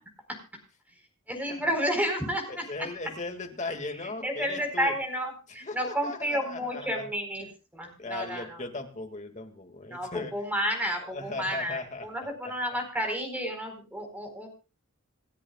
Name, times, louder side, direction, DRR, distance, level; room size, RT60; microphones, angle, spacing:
voice 1, 1.3-2.6 4.0-7.5 7.7-8.6 9.9-14.5, equal, 10° right, 3 dB, 4.3 m, -31 dB
voice 2, 2.5-4.9 5.6-7.1 8.0-10.3 11.0-12.8, left 3 dB, 35° left, 4 dB, 2.1 m, -38 dB
28.0 x 10.5 x 2.4 m, 0.33 s
head